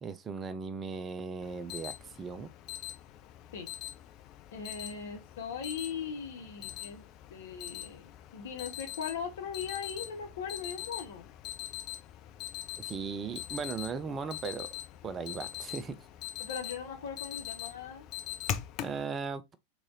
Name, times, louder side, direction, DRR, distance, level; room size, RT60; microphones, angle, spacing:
voice 1, 0.0-2.5 12.8-14.7 15.0-16.1 18.8-19.6, right 5 dB, 20° right, 0.5 m, -37 dB
Alarm, 1.4-19.0, left 12 dB, 40° left, 0.5 m, -42 dB
voice 2, 4.5-7.0 7.3-11.3 16.4-18.1, left 6 dB, 60° left, 1.2 m, -39 dB
3.7 x 3.1 x 3.8 m
figure-of-eight pair, 90°, 0 cm